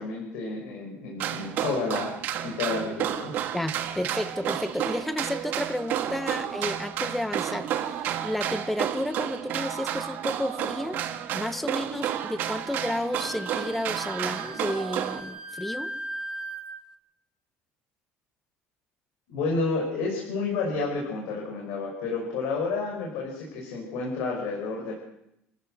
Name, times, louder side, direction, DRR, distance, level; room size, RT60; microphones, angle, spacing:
voice 1, 0.0-2.1 2.4-3.4 19.3-24.9, left 4 dB, 75° left, -1 dB, 5.6 m, -30 dB
sound 1, 1.2-15.2, right 10 dB, 50° right, 1.7 m, -31 dB
voice 2, 3.5-11.0 11.3-15.9, left 1 dB, 5° left, 11 dB, 0.9 m, -32 dB
Wind instrument woodwind instrument, 13.1-16.8, right 1 dB, 15° right, 1.4 m, -38 dB
28.5 x 14.5 x 6.5 m, 0.82 s
cardioid pair, 170°, 4 cm